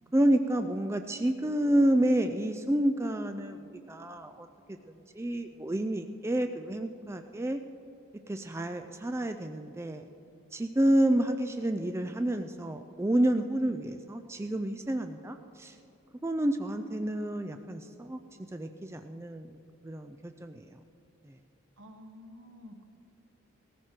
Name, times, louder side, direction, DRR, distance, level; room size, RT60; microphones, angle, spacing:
voice 1, 0.1-3.6 3.9-4.5 5.1-7.6 8.3-10.0 10.5-15.8 16.2-18.2 18.5-19.5 19.8-20.7, right 1 dB, 15° right, 7 dB, 0.4 m, -29 dB
voice 2, 21.8-22.9, left 1 dB, 65° right, 6 dB, 1.2 m, -50 dB
18.0 x 14.5 x 4.4 m, 2.7 s
head